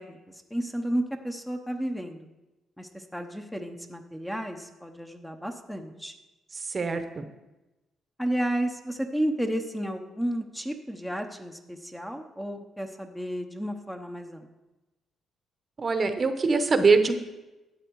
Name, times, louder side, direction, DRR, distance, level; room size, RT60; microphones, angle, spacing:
voice 1, 0.0-2.3 2.8-6.1 8.2-14.5, right 1 dB, 5° left, 5 dB, 0.9 m, -32 dB
voice 2, 6.6-7.2 15.8-17.2, right 4 dB, 35° right, 8 dB, 0.9 m, -23 dB
11.5 x 7.9 x 4.7 m, 1.1 s
cardioid pair, 90°, 0 cm